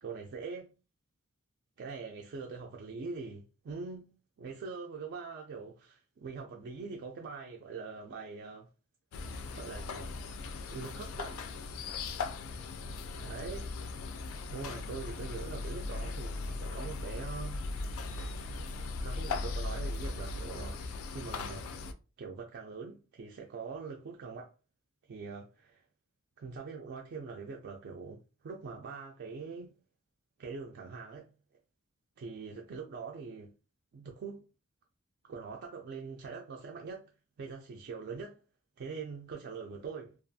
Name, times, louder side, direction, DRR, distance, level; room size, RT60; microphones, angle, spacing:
voice 1, 0.0-0.8 1.8-8.7 9.5-10.1 10.7-11.4 13.2-13.7 14.4-17.6 18.6-18.7 19.0-21.7 22.2-24.5 25.1-25.8 26.4-29.8 30.4-31.3 32.2-33.5 33.9-34.4 35.2-37.1 37.4-38.4 38.8-40.2, right 4 dB, 50° right, 0.3 m, -43 dB
sound 1, 9.1-21.9, left 3 dB, 70° left, 0.3 m, -38 dB
2.4 x 2.3 x 2.6 m
head